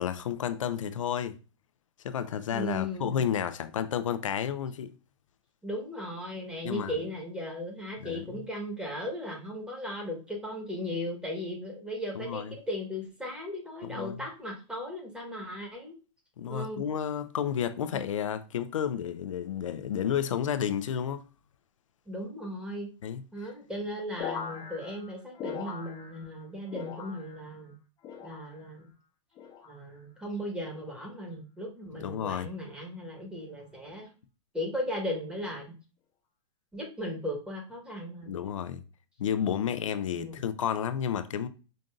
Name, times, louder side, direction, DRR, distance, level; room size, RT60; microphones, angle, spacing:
voice 1, 0.0-1.4 2.0-4.9 6.6-6.9 8.0-8.4 12.2-12.5 13.8-14.2 16.4-21.2 23.0-23.2 32.0-32.5 38.3-38.8 39.2-41.5, left 8 dB, 90° left, 0.4 m, -31 dB
voice 2, 2.5-3.2 5.6-15.9 16.5-16.8 17.9-18.0 22.1-22.9 23.3-27.8 28.2-28.9 29.7-34.1 34.5-35.8 36.7-38.3 40.1-40.5, left 1 dB, 5° right, 1.2 m, -37 dB
sound 1, 24.2-26.4 26.7-27.5 28.0-28.7 29.4-29.8 30.7-31.1 32.0-32.3, left 7 dB, 25° left, 0.6 m, -41 dB
5.1 x 2.6 x 2.3 m
hypercardioid pair, 130°, 16 cm